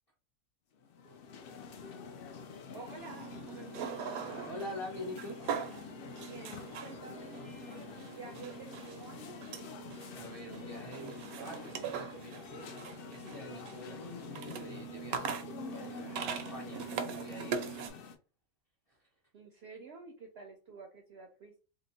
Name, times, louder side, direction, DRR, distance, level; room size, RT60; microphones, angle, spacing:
sound 1, 0.8-18.1, left 6 dB, 70° left, 0.5 m, -47 dB
voice 1, 2.7-4.0 6.2-9.4 19.3-21.6, right 4 dB, 65° right, 3 dB, 0.6 m, -50 dB
sound 2, 3.0-17.9, right 7 dB, 85° right, 1.0 m, -42 dB
voice 2, 4.4-5.4 10.1-18.0 18.9-19.1, equal, 30° left, -2 dB, 0.7 m, -46 dB
2.8 x 2.1 x 3.9 m, 0.35 s
omnidirectional pair, 1.5 m